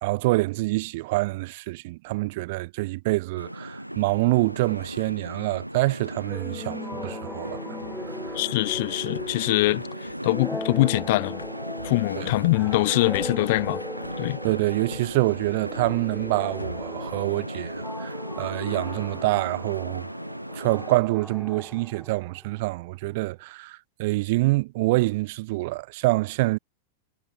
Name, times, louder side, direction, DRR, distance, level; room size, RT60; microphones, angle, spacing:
voice 1, 0.0-7.6 8.0-8.4 12.1-12.3 14.4-20.1 20.5-26.6, right 21 dB, 50° right, 1.5 m, -26 dB
sound 1, 3.4-21.0, equal, 90° right, 3.6 m, -37 dB
sound 2, 6.3-22.7, left 1 dB, 5° left, 3.0 m, -38 dB
sound 3, 7.8-11.0 11.4-12.9 13.1-17.3, left 4 dB, 75° left, 5.5 m, -45 dB
voice 2, 8.3-9.8 10.2-11.4 11.8-13.8 14.2-14.4, left 20 dB, 50° left, 1.3 m, -23 dB
figure-of-eight pair, 90°, 0 cm